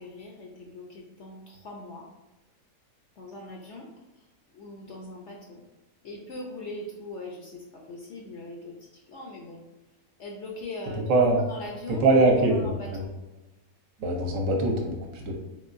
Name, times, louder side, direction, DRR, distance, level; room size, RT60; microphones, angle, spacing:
voice 1, 0.0-2.0 3.2-3.9 4.5-5.6 6.0-7.5 7.9-8.7 9.1-9.6 10.2-11.0 11.5-12.1 12.5-13.1, left 2 dB, 65° left, -1 dB, 0.7 m, -40 dB
voice 2, 10.9-11.4 11.9-13.0 14.0-15.4, right 2 dB, 65° right, 0 dB, 1.0 m, -23 dB
3.7 x 3.0 x 2.5 m, 1.0 s
omnidirectional pair, 1.6 m